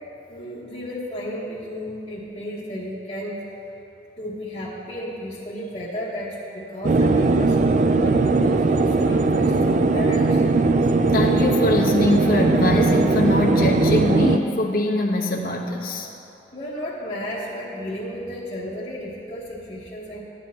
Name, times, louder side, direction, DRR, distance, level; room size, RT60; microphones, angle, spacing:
voice 1, 0.3-3.5 4.2-10.4 16.5-20.2, equal, 30° left, -11 dB, 1.3 m, -33 dB
sound 1, 6.8-14.4, right 3 dB, 45° right, 0.3 m, -19 dB
voice 2, 11.1-16.1, left 1 dB, 55° left, -1 dB, 1.0 m, -22 dB
14.5 x 9.5 x 2.8 m, 2.8 s
head